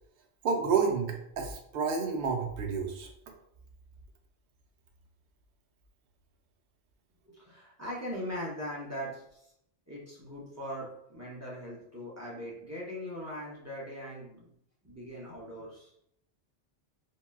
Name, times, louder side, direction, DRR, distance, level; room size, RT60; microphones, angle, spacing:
voice 1, 0.4-3.1, right 5 dB, 65° right, 1 dB, 0.7 m, -29 dB
voice 2, 7.3-9.5 9.9-14.5 14.8-15.9, equal, 20° right, -5 dB, 0.5 m, -40 dB
3.8 x 2.2 x 2.2 m, 0.74 s
omnidirectional pair, 1.2 m